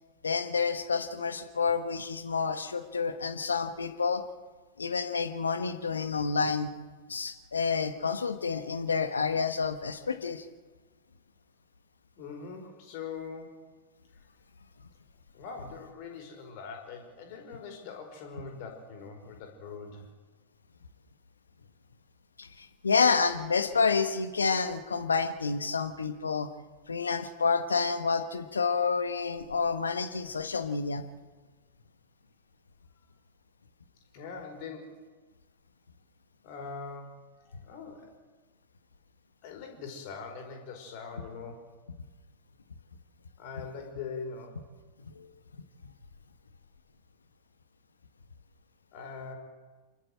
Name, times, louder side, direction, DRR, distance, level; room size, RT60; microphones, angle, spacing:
voice 1, 0.2-4.2 4.8-6.7 7.1-10.4 22.4-26.5 26.9-31.0 45.1-45.3, left 5 dB, 75° left, 9 dB, 1.4 m, -29 dB
voice 2, 12.2-13.7 14.1-14.2 15.3-20.1 34.1-35.0 36.4-38.1 39.4-41.7 43.4-44.6 48.9-49.4, left 5 dB, 45° left, 4 dB, 4.9 m, -42 dB
28.0 x 12.5 x 7.9 m, 1.4 s
figure-of-eight pair, 90°, 0 cm